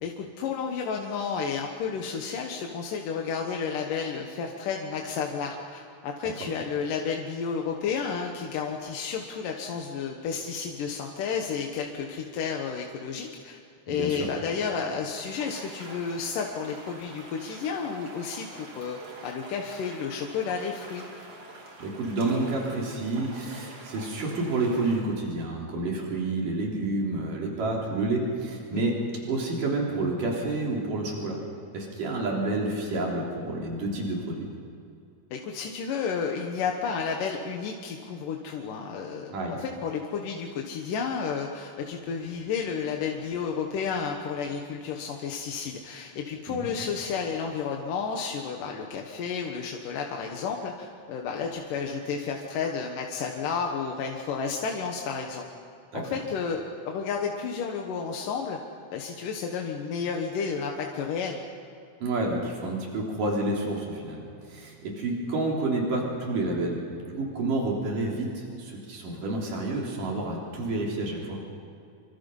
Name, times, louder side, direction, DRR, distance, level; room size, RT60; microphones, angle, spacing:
voice 1, 0.0-13.6 13.9-19.0 19.2-21.0 28.7-28.9 35.3-55.5 55.9-58.6 58.9-61.4, left 6 dB, 85° left, 1 dB, 3.0 m, -31 dB
voice 2, 13.9-14.2 21.8-29.0 29.3-31.4 31.7-34.5 39.3-39.6 46.5-46.7 55.9-56.0 62.0-64.2 64.5-66.8 67.0-71.4, right 2 dB, 80° right, -2 dB, 5.1 m, -29 dB
sound 1, 15.2-25.0, right 2 dB, 50° right, 4.4 m, -46 dB
27.0 x 25.0 x 5.5 m, 2.5 s
omnidirectional pair, 3.7 m